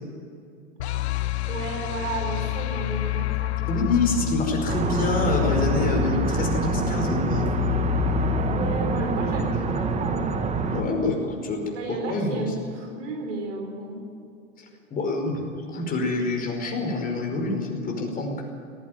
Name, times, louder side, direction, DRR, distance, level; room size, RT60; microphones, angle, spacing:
sound 1, 0.8-9.9, left 17 dB, 55° left, 1.0 m, -28 dB
voice 1, 1.5-3.6 8.4-10.3 11.7-14.0, right 2 dB, 70° right, 2 dB, 4.6 m, -33 dB
voice 2, 3.7-7.5 10.7-11.6 11.9-12.5 14.9-18.4, left 2 dB, 20° left, 1 dB, 5.2 m, -26 dB
sound 2, 4.7-10.8, right 4 dB, 15° right, 1.6 m, -26 dB
19.0 x 15.0 x 9.4 m, 2.4 s
hypercardioid pair, 115°, 38 cm